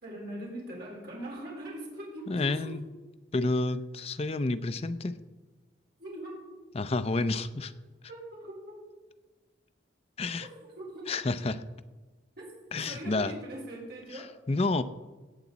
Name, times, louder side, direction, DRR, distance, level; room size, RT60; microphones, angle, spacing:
voice 1, 0.0-2.7 6.0-6.4 8.1-8.7 10.8-11.0 12.4-12.5 12.8-14.3, right 1 dB, 55° right, -4 dB, 4.1 m, -41 dB
voice 2, 2.3-2.9 3.3-5.2 6.7-7.7 10.2-10.5 11.1-11.6 12.7-13.4 14.1-14.8, left 2 dB, 30° left, 11 dB, 0.5 m, -30 dB
16.5 x 7.1 x 4.0 m, 1.2 s
head